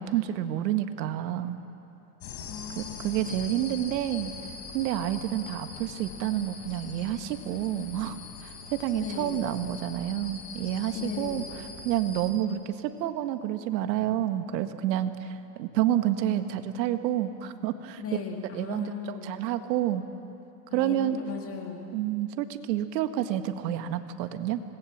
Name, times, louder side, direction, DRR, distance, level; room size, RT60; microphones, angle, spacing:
voice 1, 0.0-1.6 2.7-4.3 4.7-11.4 11.8-18.2 18.5-20.0 20.7-21.2 21.9-24.6, right 12 dB, 80° right, 9 dB, 1.6 m, -29 dB
sound 1, 2.2-12.3, left 5 dB, 60° left, 4.7 m, -42 dB
voice 2, 2.5-3.5 8.9-9.4 10.9-11.4 18.0-19.3 20.7-21.9, left 7 dB, 25° left, 2 dB, 2.1 m, -37 dB
25.5 x 20.0 x 7.4 m, 2.8 s
supercardioid pair, 140°, 50 cm